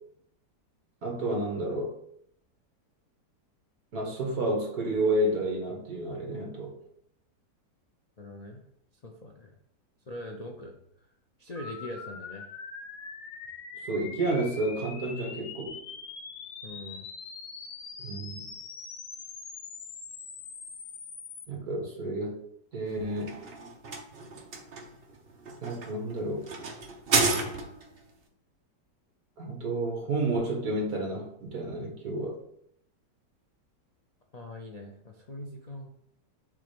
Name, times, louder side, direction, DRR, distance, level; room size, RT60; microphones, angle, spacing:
voice 1, 1.0-1.9 3.9-6.7 13.8-15.8 18.0-18.5 21.5-22.4 22.7-23.4 25.6-26.5 29.4-32.4, right 1 dB, 60° right, 1 dB, 2.1 m, -30 dB
voice 2, 8.2-8.6 9.0-9.6 10.1-10.8 11.4-12.5 16.6-17.1 34.3-35.9, left 1 dB, 85° left, 1 dB, 0.3 m, -42 dB
sound 1, 11.6-21.5, left 5 dB, 70° left, 1.5 m, -43 dB
sound 2, 22.9-28.0, right 3 dB, 45° right, 0.9 m, -32 dB
7.3 x 3.3 x 5.1 m, 0.73 s
omnidirectional pair, 1.9 m